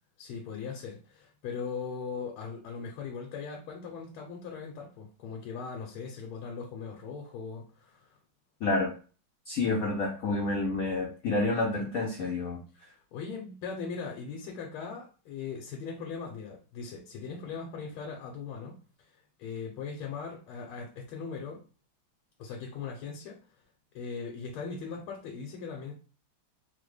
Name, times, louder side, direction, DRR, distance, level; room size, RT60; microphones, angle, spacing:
voice 1, 0.2-8.1 12.8-18.8 19.4-21.6 22.4-23.4 23.9-25.9, left 5 dB, 85° left, 0 dB, 1.6 m, -39 dB
voice 2, 8.6-8.9 9.5-12.6, left 2 dB, 70° left, -2 dB, 0.8 m, -29 dB
4.0 x 2.1 x 3.2 m, 0.36 s
omnidirectional pair, 2.3 m